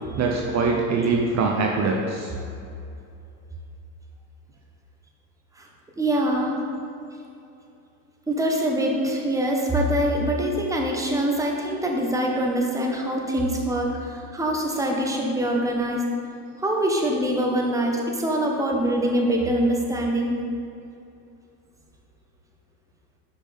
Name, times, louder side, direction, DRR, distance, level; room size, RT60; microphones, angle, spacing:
voice 1, 0.2-2.3, right 4 dB, 40° right, 0 dB, 0.6 m, -23 dB
voice 2, 6.0-6.6 8.3-16.1 16.6-20.4, right 1 dB, 5° right, 0 dB, 0.9 m, -24 dB
6.0 x 5.4 x 3.4 m, 2.6 s
supercardioid pair, 90°, 43 cm